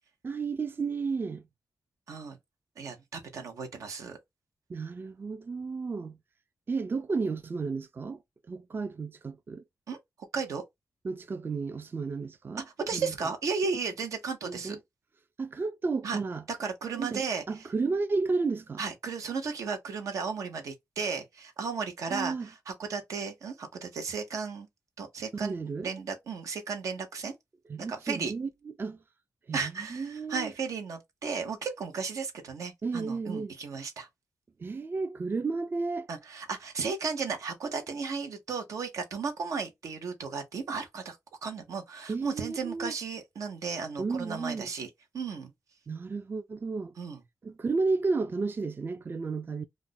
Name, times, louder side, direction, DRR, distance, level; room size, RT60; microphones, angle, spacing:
voice 1, 0.2-1.4 4.7-6.2 6.7-8.2 8.5-9.6 11.0-12.6 12.9-13.1 14.4-14.8 15.4-16.4 17.0-17.2 17.5-18.8 22.1-22.5 25.4-25.9 27.7-28.5 28.8-29.0 29.5-30.5 32.8-33.5 34.6-36.1 42.1-42.9 44.0-44.7 45.9-46.9 47.4-49.6, right 4 dB, 40° right, 0.4 m, -32 dB
voice 2, 2.8-4.2 9.9-10.0 10.3-10.6 12.7-14.8 16.0-16.2 16.5-17.6 18.8-24.7 25.0-27.3 27.9-28.3 29.5-34.1 36.1-41.2 41.4-45.5 47.0-47.2, right 5 dB, 85° right, 0.7 m, -34 dB
2.4 x 2.0 x 3.8 m
cardioid pair, 60°, 5 cm